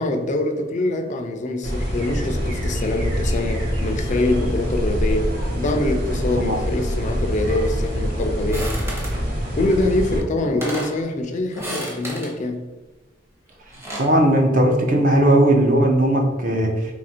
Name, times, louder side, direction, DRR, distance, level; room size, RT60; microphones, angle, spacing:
voice 1, 0.0-8.8 9.5-12.6, left 2 dB, 40° left, 0.4 m, -24 dB
sound 1, 1.6-10.2, equal, 70° right, 1.1 m, -25 dB
sound 2, 8.5-9.2 10.1-10.2 10.4-11.0 11.5-12.3 13.5-14.1, equal, 15° right, 0.8 m, -32 dB
voice 2, 14.0-16.7, right 1 dB, 50° right, 0.6 m, -17 dB
2.9 x 2.5 x 4.2 m
head